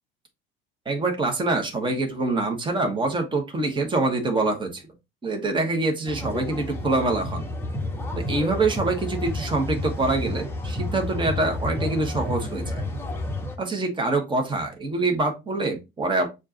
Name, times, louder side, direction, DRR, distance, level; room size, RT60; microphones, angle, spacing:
voice 1, 0.8-4.8 5.2-7.4 8.2-12.9 13.6-16.3, right 2 dB, 15° right, 3 dB, 1.4 m, -25 dB
sound 1, 6.1-13.6, left 2 dB, 10° left, 1.1 m, -30 dB
7.1 x 2.6 x 2.8 m, 0.24 s
figure-of-eight pair, 65°, 29 cm